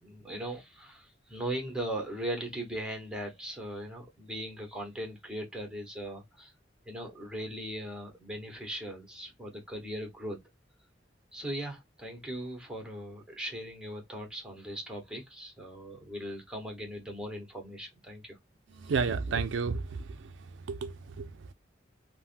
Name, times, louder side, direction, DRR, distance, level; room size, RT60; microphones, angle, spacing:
voice 1, 0.0-6.5 6.9-10.4 11.3-18.4, right 1 dB, 5° right, 1.0 m, -39 dB
voice 2, 18.7-21.5, right 5 dB, 75° right, 0.4 m, -33 dB
3.4 x 2.1 x 2.4 m
head